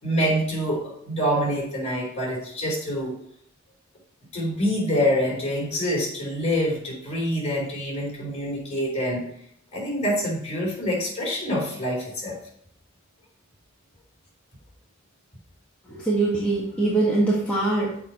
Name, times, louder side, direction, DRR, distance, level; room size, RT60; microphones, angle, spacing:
voice 1, 0.0-3.1 4.3-9.3 9.7-12.4, equal, 30° left, -3 dB, 3.9 m, -26 dB
voice 2, 15.9-18.0, right 2 dB, 5° left, -7 dB, 1.6 m, -23 dB
7.1 x 5.1 x 7.1 m, 0.68 s
head